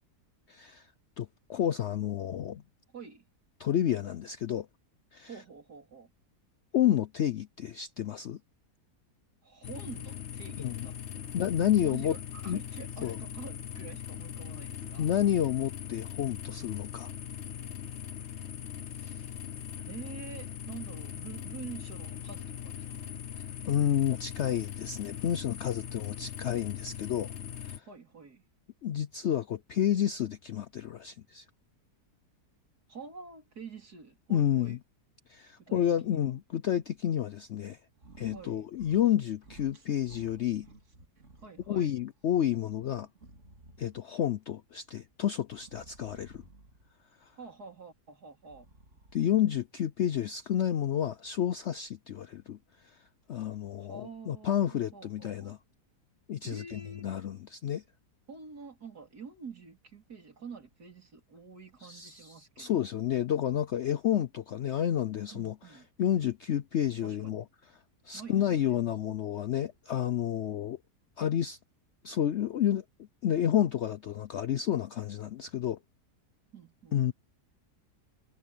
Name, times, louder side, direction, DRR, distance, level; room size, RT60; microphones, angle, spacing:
voice 1, 0.5-0.9 1.2-2.6 3.6-4.7 5.1-5.3 6.7-8.4 10.6-10.9 11.3-12.1 12.5-12.6 13.0-13.2 15.0-17.1 23.6-27.3 27.6-27.8 28.8-31.4 34.3-34.8 35.3-37.8 38.2-40.7 41.7-43.1 43.8-46.4 47.2-47.3 49.1-52.6 52.8-53.0 53.3-55.6 56.3-57.8 61.8-65.5 66.0-67.4 68.1-70.8 71.2-71.6 72.0-72.8 73.2-75.8 76.9-77.1, left 10 dB, 70° left, 0.7 m, -30 dB
voice 2, 2.9-3.3 5.3-6.1 9.4-11.3 11.6-15.1 18.9-19.3 19.9-23.1 27.9-28.4 32.9-34.8 35.6-36.4 38.3-38.7 41.4-41.9 47.3-48.7 53.8-55.6 56.4-57.0 58.3-62.9 65.3-65.9 67.0-67.4 68.1-69.1 76.5-77.1, right 5 dB, 70° right, 4.2 m, -47 dB
sound 1, 9.6-27.8, left 9 dB, 50° left, 1.1 m, -40 dB
sound 2, 37.9-38.5 38.7-39.2 39.4-41.8 42.2-44.2 45.5-46.9 48.4-49.4, right 2 dB, 45° right, 2.8 m, -55 dB
omnidirectional pair, 1.7 m